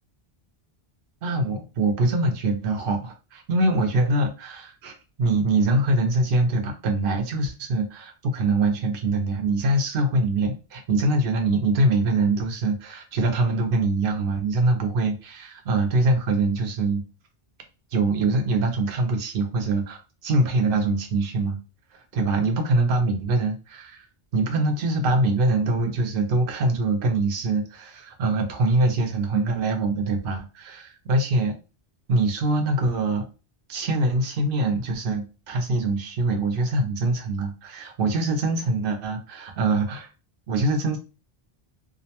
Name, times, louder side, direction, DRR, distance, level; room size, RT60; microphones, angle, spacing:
voice 1, 1.2-17.0 17.9-21.6 22.1-24.0 24.3-31.5 32.1-33.3 33.7-40.1 40.5-41.0, right 2 dB, 65° right, 5 dB, 0.8 m, -23 dB
2.5 x 2.1 x 2.8 m, 0.31 s
omnidirectional pair, 1.0 m